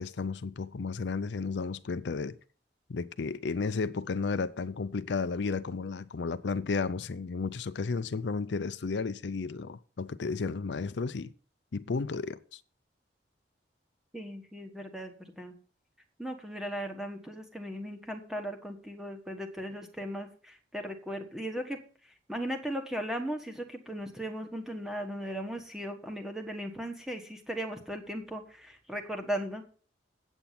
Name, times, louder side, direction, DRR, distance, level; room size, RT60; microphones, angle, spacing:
voice 1, 0.0-2.4 2.9-11.3 11.7-12.6, left 4 dB, 75° left, 0.5 m, -33 dB
voice 2, 14.1-15.5 16.2-21.8 22.3-29.6, equal, 5° right, 1.3 m, -37 dB
8.7 x 8.1 x 5.8 m
head